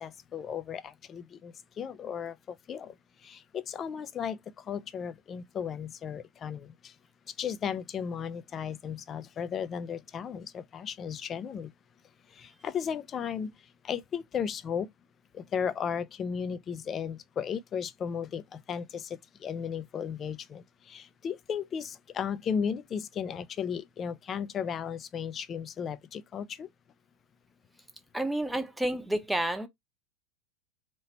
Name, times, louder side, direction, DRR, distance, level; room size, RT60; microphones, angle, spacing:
voice 1, 0.0-2.4 2.7-2.9 3.2-6.9 7.4-11.7 12.4-13.5 13.8-14.9 15.3-26.7, left 7 dB, 30° left, 0.4 m, -35 dB
voice 2, 28.1-29.7, right 1 dB, 5° right, 0.8 m, -30 dB
3.0 x 2.8 x 4.3 m
figure-of-eight pair, 85°, 0 cm